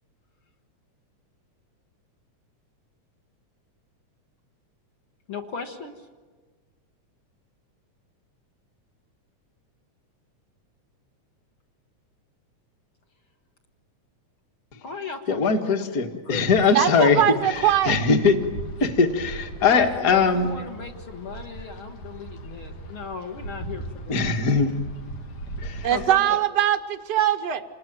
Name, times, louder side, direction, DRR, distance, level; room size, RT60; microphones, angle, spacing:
voice 1, 5.3-6.1 14.8-15.8 16.3-16.9 19.6-24.3 25.9-26.4, left 5 dB, 55° left, 1.8 m, -36 dB
voice 2, 15.3-18.4 18.8-20.5 24.1-24.8 25.6-25.9, left 5 dB, 35° left, 1.7 m, -21 dB
Wind, 16.5-26.3, right 1 dB, 90° left, 4.0 m, -39 dB
voice 3, 16.7-17.9 25.8-27.6, right 10 dB, 70° right, 0.9 m, -21 dB
28.0 x 20.0 x 9.1 m
omnidirectional pair, 3.4 m